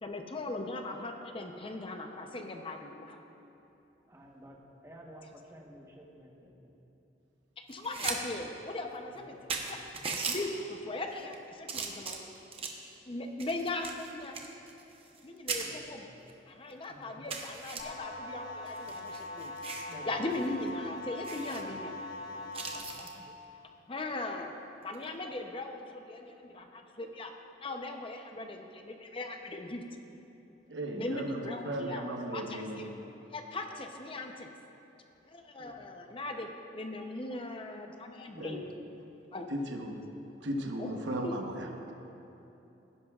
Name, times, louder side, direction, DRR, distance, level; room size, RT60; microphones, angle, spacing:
voice 1, 0.0-3.2 7.7-9.8 10.2-12.2 13.1-14.4 15.2-16.1 16.5-19.5 19.8-22.0 23.0-23.3 23.9-24.5 24.8-27.3 27.6-30.1 31.0-32.0 32.3-32.6 33.3-34.5 35.3-36.5 36.7-38.6 39.3-39.5 40.8-40.9 41.2-41.4, left 2 dB, 30° left, 4 dB, 0.7 m, -39 dB
voice 2, 4.1-6.7 9.1-9.4 15.5-16.0 16.9-17.3 19.8-20.5 21.4-21.7 22.7-23.0 30.9-31.2 35.6-35.9 38.3-38.9 39.5-40.0, equal, 15° right, -1 dB, 1.1 m, -51 dB
sound 1, 7.7-8.2 8.5-8.6 9.2-9.3 9.5-10.4 11.1-11.3 11.7-12.8 13.4-15.2 15.5-15.7 16.3-16.4 16.7-16.8 17.3-17.8 18.7-19.9 20.3-20.5 20.7-20.8 21.2-21.6 22.5-23.1 24.8-25.1, right 5 dB, 30° right, 0.9 m, -38 dB
sound 2, 17.8-22.8, left 2 dB, 55° left, 1.2 m, -42 dB
voice 3, 30.7-32.9 38.4-38.5 39.5-40.0 40.4-41.9, right 1 dB, 90° right, 2 dB, 1.1 m, -36 dB
17.5 x 10.5 x 2.4 m, 3.0 s
head